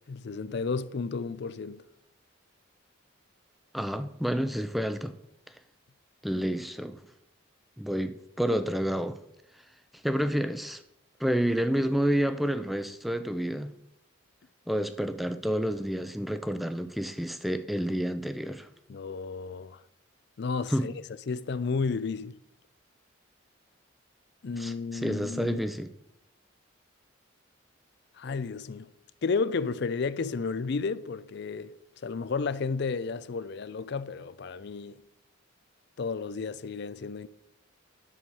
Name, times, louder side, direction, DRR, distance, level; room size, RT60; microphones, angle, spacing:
voice 1, 0.1-1.8 18.9-19.8 20.4-20.9 21.3-22.4 24.4-25.6 28.2-28.9 29.2-31.7 32.0-35.0 36.0-37.3, left 4 dB, 55° left, 0.4 m, -32 dB
voice 2, 3.7-5.1 6.2-7.0 7.8-9.2 10.0-10.8 11.2-13.7 14.7-18.7 20.7-20.9 24.6-25.9, equal, ahead, 0.5 m, -29 dB
10.0 x 7.1 x 4.7 m
head